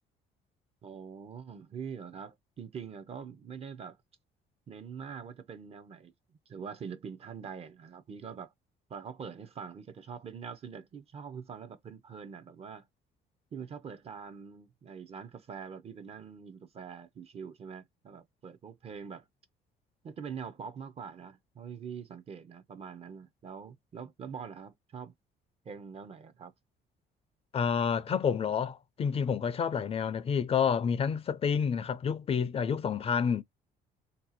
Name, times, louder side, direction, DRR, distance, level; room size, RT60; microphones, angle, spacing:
voice 1, 0.8-4.0 4.7-6.1 6.5-8.5 8.9-12.9 13.5-19.3 20.0-25.1 25.6-26.5, right 6 dB, 35° right, 0.5 m, -44 dB
voice 2, 27.5-33.4, left 7 dB, 35° left, 0.4 m, -29 dB
2.7 x 2.3 x 4.0 m
cardioid pair, 110°, 17 cm